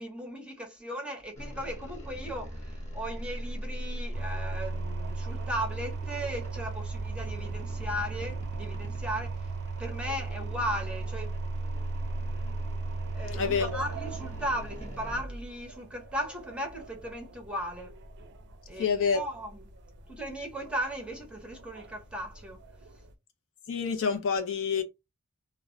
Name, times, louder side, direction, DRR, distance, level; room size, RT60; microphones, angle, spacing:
voice 1, 0.0-9.3 9.8-11.4 13.1-18.0 18.7-19.6 20.1-22.6, equal, 5° right, 0.7 m, -37 dB
sound 1, 1.4-15.2, equal, 30° left, 0.8 m, -38 dB
sound 2, 4.1-23.1, right 5 dB, 50° right, 0.4 m, -39 dB
voice 2, 13.3-13.9 18.8-19.3 23.7-24.8, left 6 dB, 60° left, 0.5 m, -28 dB
2.1 x 2.1 x 3.6 m
head